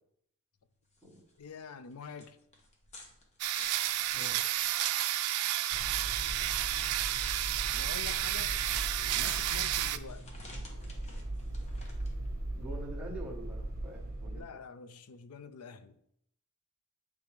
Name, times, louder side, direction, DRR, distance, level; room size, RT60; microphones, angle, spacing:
sound 1, 0.7-15.3, left 2 dB, 30° left, 1.0 m, -56 dB
voice 1, 1.4-2.4 7.7-8.6 9.2-10.3 14.3-16.0, left 6 dB, 80° left, 0.5 m, -46 dB
sound 2, 3.4-10.0, right 13 dB, 90° right, 0.4 m, -31 dB
voice 2, 4.1-4.4 9.0-9.3 12.5-14.5, right 1 dB, 5° right, 1.2 m, -45 dB
sound 3, 5.7-14.4, right 1 dB, 45° right, 1.1 m, -39 dB
8.8 x 3.5 x 3.3 m
head